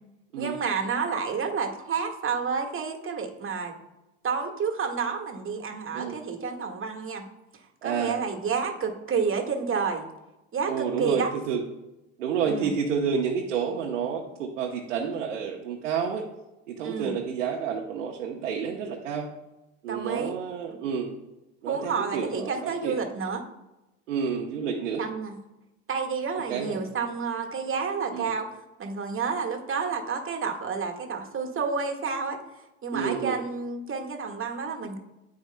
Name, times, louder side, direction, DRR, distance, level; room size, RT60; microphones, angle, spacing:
voice 1, 0.4-3.7 4.2-7.2 7.8-10.1 10.5-11.3 12.4-12.7 16.8-17.1 19.9-20.4 20.7-20.8 21.7-23.4 25.0-25.4 25.9-28.5 28.8-32.4 32.8-35.0, right 5 dB, 35° right, 3 dB, 1.7 m, -30 dB
voice 2, 7.8-8.2 10.6-11.6 12.2-16.2 16.7-19.3 19.8-21.1 21.6-23.0 24.1-25.0 26.5-26.9 28.1-28.3 32.9-33.4, right 6 dB, 90° right, -1 dB, 1.0 m, -30 dB
13.0 x 4.8 x 2.2 m, 0.97 s
hypercardioid pair, 75°, 36 cm